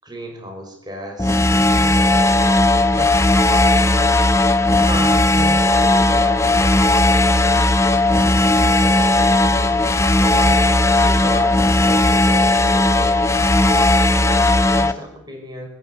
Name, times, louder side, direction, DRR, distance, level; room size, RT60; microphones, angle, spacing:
voice 1, 0.0-3.3 4.4-10.6 11.0-13.5 14.3-15.7, right 1 dB, 20° right, 3 dB, 5.6 m, -35 dB
sound 1, 1.2-14.9, left 2 dB, 15° left, 1.0 m, -16 dB
23.0 x 20.0 x 8.3 m, 0.70 s
head